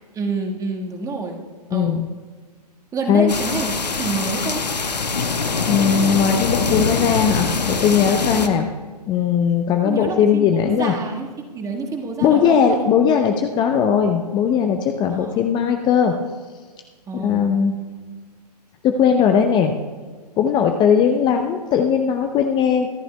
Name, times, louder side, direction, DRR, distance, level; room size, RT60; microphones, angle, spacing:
voice 1, 0.1-1.4 1.7-2.0 2.9-4.7 8.3-8.6 9.8-11.3 11.5-12.8 15.1-15.4 17.1-17.5, right 3 dB, 15° right, 1 dB, 1.6 m, -27 dB
voice 2, 1.7-2.1 3.1-3.3 5.7-8.7 9.1-11.0 12.2-16.1 17.1-17.7 18.8-19.7 20.4-22.9, left 7 dB, 20° left, 5 dB, 0.7 m, -18 dB
sound 1, 3.3-8.5, left 4 dB, 85° left, 1.1 m, -23 dB
24.0 x 12.0 x 2.3 m, 1.5 s
figure-of-eight pair, 115°, 21 cm